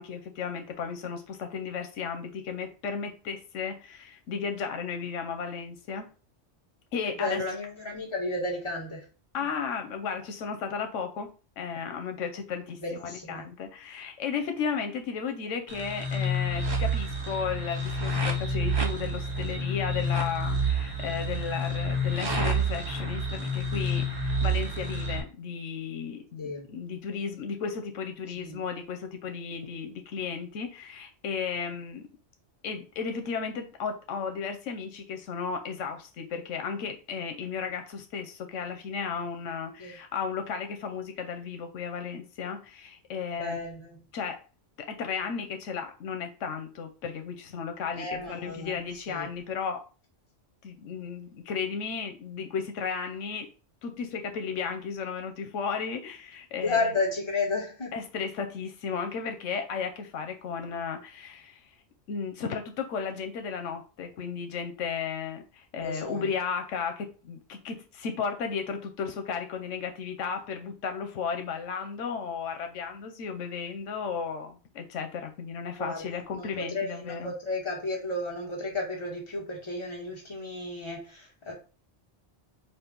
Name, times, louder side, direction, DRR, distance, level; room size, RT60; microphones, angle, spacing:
voice 1, 0.0-6.1 6.9-7.4 9.3-32.1 32.6-43.6 44.1-44.4 44.8-49.8 50.6-53.5 53.8-56.9 57.9-61.6 62.1-77.3, left 6 dB, 85° left, 1.0 m, -34 dB
voice 2, 7.0-9.0 12.8-13.4 26.4-26.6 28.3-28.6 39.8-40.0 43.4-44.0 48.0-48.8 49.1-49.3 56.6-57.9 65.8-66.2 75.8-81.5, left 2 dB, 25° left, 1.6 m, -33 dB
sound 1, 15.7-25.2, equal, 25° right, 0.7 m, -29 dB
5.1 x 2.5 x 3.7 m
omnidirectional pair, 1.2 m